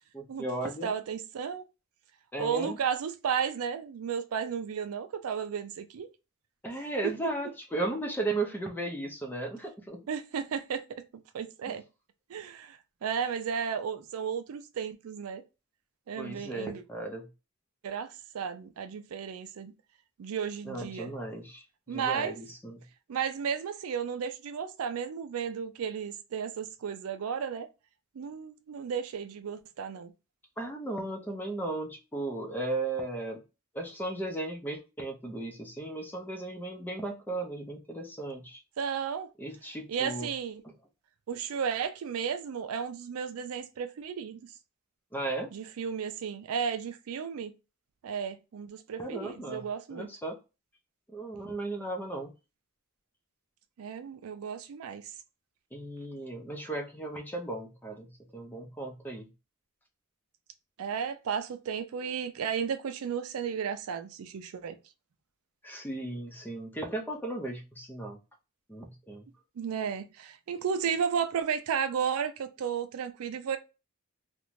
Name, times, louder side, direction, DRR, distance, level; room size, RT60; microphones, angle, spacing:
voice 1, 0.1-0.9 2.3-2.8 6.6-10.0 11.7-11.8 16.2-17.3 20.6-22.8 30.6-33.4 33.7-38.6 39.4-40.3 45.1-45.5 49.0-49.6 49.9-50.4 51.1-52.3 55.7-59.3 65.6-68.2 68.7-69.3, right 2 dB, 10° left, 0.4 m, -36 dB
voice 2, 0.8-1.6 2.4-6.1 7.0-7.1 10.1-10.8 11.3-11.8 12.3-15.4 16.1-16.8 17.8-19.7 20.2-21.1 21.9-22.4 23.1-27.7 28.2-30.1 38.8-39.3 39.9-40.6 41.3-44.4 45.5-47.5 48.0-50.1 53.8-55.0 60.8-64.8 69.6-73.6, right 7 dB, 80° right, 0.4 m, -33 dB
2.5 x 2.1 x 3.0 m
head